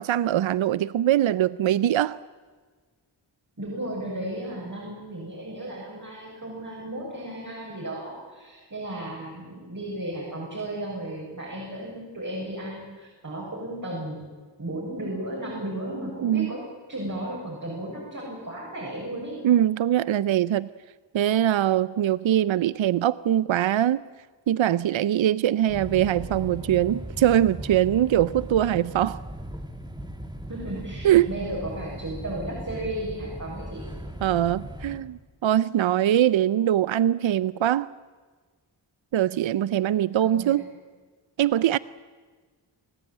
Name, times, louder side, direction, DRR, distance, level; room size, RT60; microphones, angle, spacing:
voice 1, 0.0-2.2 16.2-16.5 19.4-20.7 21.1-24.0 24.5-29.2 31.0-31.3 34.2-37.9 39.1-40.7 41.4-41.8, right 11 dB, 75° right, 18 dB, 0.6 m, -22 dB
voice 2, 3.6-14.3 14.6-16.6 16.9-19.4 30.5-33.8 40.2-40.6, right 1 dB, 40° right, -4 dB, 7.3 m, -34 dB
sound 1, 25.7-35.0, right 1 dB, 10° right, 2.2 m, -38 dB
28.0 x 15.5 x 9.1 m, 1.5 s
wide cardioid pair, 90°, 47 cm